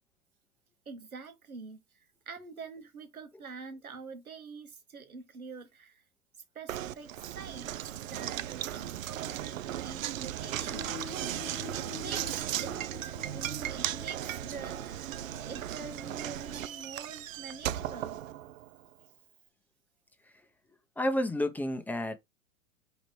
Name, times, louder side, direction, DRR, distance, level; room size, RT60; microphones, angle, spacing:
voice 1, 0.9-6.0 6.5-7.7 8.0-11.0 11.8-12.8 13.0-18.2, right 4 dB, 90° right, 1.0 m, -46 dB
Knock, 6.7-18.8, right 12 dB, 70° right, 0.5 m, -36 dB
sound 1, 10.4-17.7, left 7 dB, 40° left, 1.0 m, -48 dB
voice 2, 21.0-22.2, left 1 dB, 5° left, 0.7 m, -30 dB
5.0 x 3.0 x 3.1 m
figure-of-eight pair, 95°, 42 cm